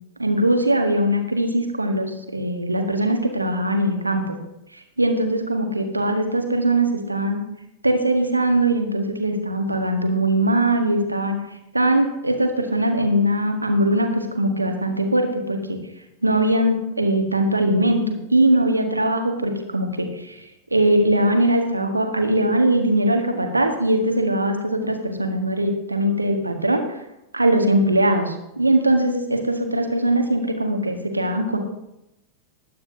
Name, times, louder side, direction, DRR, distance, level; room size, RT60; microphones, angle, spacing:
voice 1, 0.2-4.4 5.0-7.4 7.8-11.4 11.7-15.8 16.2-20.1 20.7-26.8 27.3-31.6, right 1 dB, 85° right, 4 dB, 1.7 m, -21 dB
20.5 x 9.2 x 2.8 m, 0.87 s
figure-of-eight pair, 90°, 0 cm